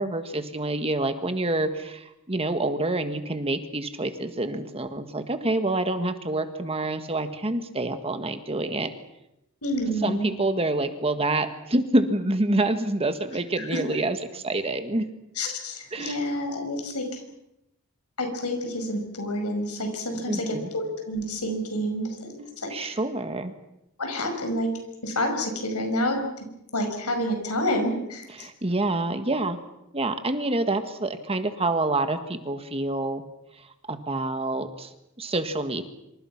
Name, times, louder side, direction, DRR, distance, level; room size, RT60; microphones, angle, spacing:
voice 1, 0.0-8.9 10.0-15.0 15.9-16.2 20.3-20.7 22.7-23.5 28.4-29.6 29.9-33.2 33.9-34.9 35.2-35.8, right 2 dB, 25° right, 8 dB, 1.6 m, -27 dB
voice 2, 9.6-10.3 13.6-13.8 15.4-17.2 18.2-23.0 24.0-24.7 25.0-26.5 26.7-28.5, equal, 85° left, 4 dB, 5.7 m, -29 dB
26.5 x 26.5 x 5.9 m, 0.86 s
head